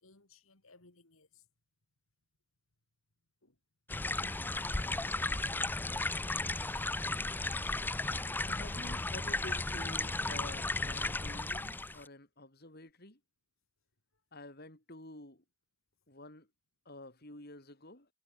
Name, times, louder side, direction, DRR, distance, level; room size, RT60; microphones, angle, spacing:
voice 1, 0.0-1.5 3.4-3.6, left 2 dB, 75° left, 3.3 m, -64 dB
sound 1, 3.9-12.1, left 2 dB, 10° left, 0.4 m, -35 dB
voice 2, 8.5-13.2 14.3-15.4 16.1-16.5 16.9-18.1, left 1 dB, 50° left, 5.5 m, -49 dB
head